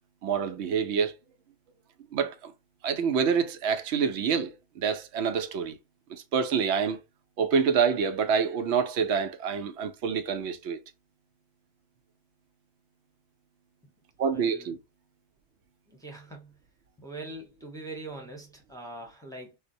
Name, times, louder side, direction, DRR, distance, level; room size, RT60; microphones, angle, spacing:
voice 1, 0.2-1.1 2.1-2.5 2.8-5.8 6.1-7.0 7.4-10.8 14.2-14.8, right 6 dB, 90° right, 0.9 m, -27 dB
voice 2, 14.3-14.7 16.0-16.5 17.0-19.6, right 2 dB, 5° left, 0.7 m, -42 dB
3.8 x 2.1 x 2.6 m
omnidirectional pair, 1.1 m